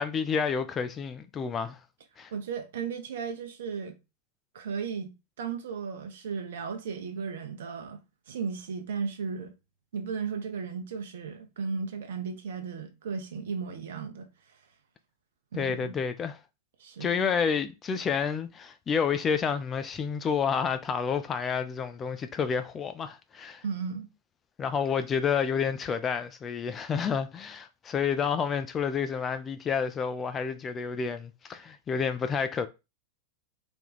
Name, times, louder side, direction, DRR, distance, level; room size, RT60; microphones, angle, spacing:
voice 1, 0.0-1.8 2.2-2.3 15.5-16.4 17.0-23.6 24.6-32.7, left 6 dB, 25° left, 0.4 m, -29 dB
voice 2, 2.3-4.0 4.5-8.0 8.3-9.5 9.9-14.3 15.5-16.0 16.8-17.2 23.6-24.1, right 5 dB, 60° right, 0.7 m, -35 dB
3.5 x 2.3 x 3.9 m
figure-of-eight pair, 90°, 0 cm